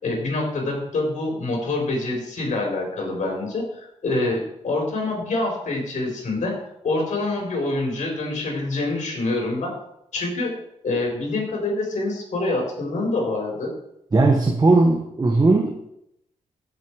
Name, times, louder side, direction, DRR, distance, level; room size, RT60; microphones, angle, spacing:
voice 1, 0.0-9.7 10.1-10.6 10.8-13.7, left 2 dB, 65° left, -1 dB, 4.7 m, -26 dB
voice 2, 14.1-15.9, right 3 dB, 30° right, 2 dB, 1.4 m, -18 dB
15.0 x 6.8 x 4.9 m, 0.78 s
cardioid pair, 100°, 13 cm